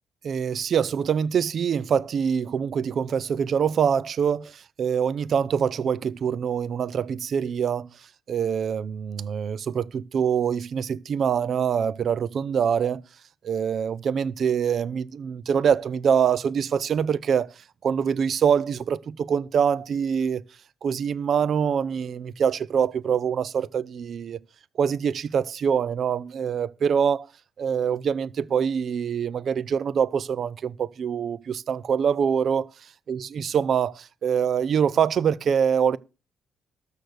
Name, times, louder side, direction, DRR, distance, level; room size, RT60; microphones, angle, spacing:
voice 1, 0.2-7.9 8.3-13.0 13.4-20.4 20.8-24.4 24.8-27.3 27.6-36.0, right 7 dB, 55° right, 0.5 m, -24 dB
13.0 x 6.5 x 6.6 m
cardioid pair, 90°, 0 cm